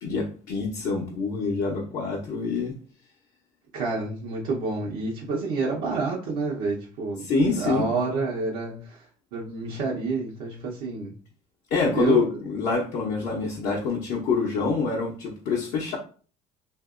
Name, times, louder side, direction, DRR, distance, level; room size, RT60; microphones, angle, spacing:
voice 1, 0.0-2.7 7.2-7.9 11.7-16.0, left 4 dB, 65° left, -2 dB, 0.7 m, -26 dB
voice 2, 3.7-7.2 7.5-9.0 9.3-11.1 11.9-12.3, right 3 dB, 80° right, -4 dB, 0.8 m, -28 dB
2.7 x 2.5 x 2.4 m, 0.40 s
cardioid pair, 100°, 16 cm